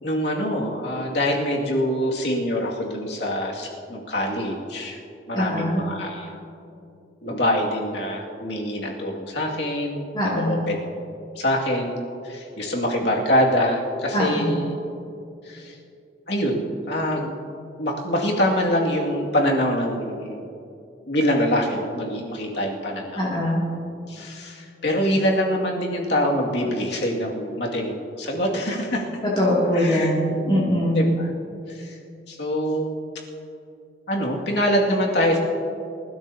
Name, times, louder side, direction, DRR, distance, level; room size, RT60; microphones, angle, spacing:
voice 1, 0.0-5.0 5.3-6.4 7.2-10.8 11.4-14.7 15.4-15.8 16.3-17.3 17.8-20.5 21.1-23.3 24.1-29.0 29.7-30.1 30.9-31.3 31.7-32.0 32.3-33.0 34.1-35.4, equal, 70° left, -2 dB, 2.3 m, -24 dB
voice 2, 5.3-5.8 10.1-10.6 14.1-14.5 23.1-23.6 29.4-31.0, equal, 25° left, -7 dB, 2.6 m, -22 dB
27.0 x 12.5 x 2.9 m, 2.6 s
head